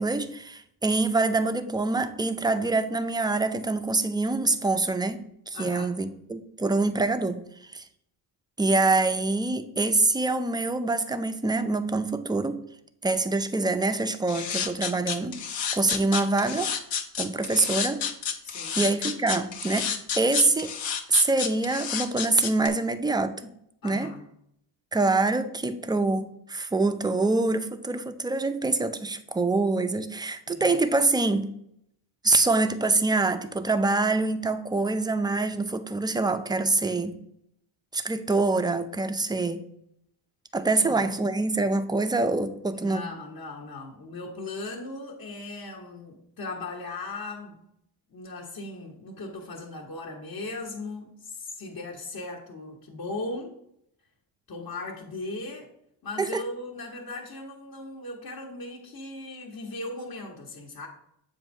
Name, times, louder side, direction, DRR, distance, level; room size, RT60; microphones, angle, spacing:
voice 1, 0.0-7.8 8.6-12.6 13.0-15.3 15.7-16.7 17.2-18.1 18.8-19.9 20.1-20.7 21.1-23.5 23.8-24.1 24.9-31.5 32.2-37.1 37.9-39.6 40.5-43.0 56.2-56.4, right 3 dB, 10° right, 9 dB, 0.4 m, -25 dB
voice 2, 5.5-5.9 18.4-18.8 23.8-24.2 30.5-30.7 40.7-41.0 42.7-47.6 48.1-53.6 54.5-55.7 56.0-60.9, left 2 dB, 45° left, -4 dB, 1.2 m, -38 dB
sound 1, 14.3-22.7, left 7 dB, 65° left, 1.0 m, -30 dB
7.4 x 2.6 x 5.2 m, 0.73 s
cardioid pair, 75°, 49 cm